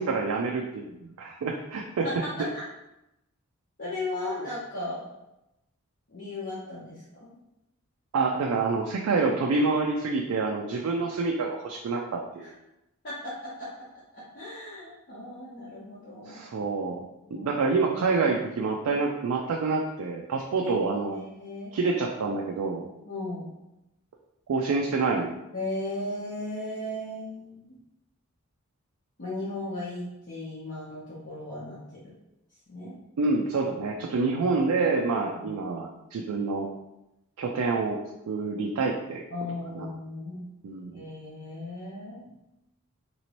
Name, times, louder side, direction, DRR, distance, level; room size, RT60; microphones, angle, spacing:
voice 1, 0.0-2.1 8.1-12.5 16.2-17.0 17.3-21.2 21.7-22.8 24.5-25.4 33.2-36.7 37.4-38.0 38.3-39.2 39.7-39.9 40.6-41.1, right 4 dB, 80° right, 0 dB, 0.4 m, -27 dB
voice 2, 3.8-5.0 6.1-7.3 12.4-12.5 13.0-13.3 13.6-13.7 14.1-16.4 17.2-17.5 20.5-21.7 23.0-23.5 25.5-27.8 29.2-32.0 32.7-32.9 35.4-35.5 39.3-40.5 40.9-42.3, left 2 dB, 50° left, -10 dB, 0.8 m, -36 dB
3.0 x 2.9 x 2.9 m, 0.91 s
head